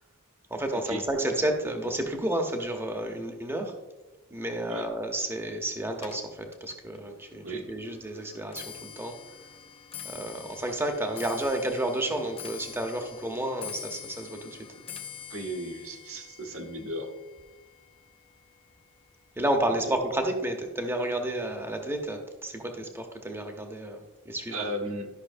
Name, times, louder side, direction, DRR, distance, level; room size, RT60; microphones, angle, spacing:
voice 1, 0.5-3.7 4.3-9.1 10.0-14.6 19.4-24.7, right 1 dB, 10° right, 4 dB, 0.8 m, -31 dB
Clock, 6.0-19.3 19.6-20.1 20.9-21.0 21.3-21.7 22.0-22.1, left 8 dB, 25° left, 0.5 m, -46 dB
voice 2, 15.3-17.2 19.7-19.8 24.5-25.1, right 1 dB, 65° right, 3 dB, 1.2 m, -35 dB
12.0 x 5.7 x 2.6 m, 1.1 s
head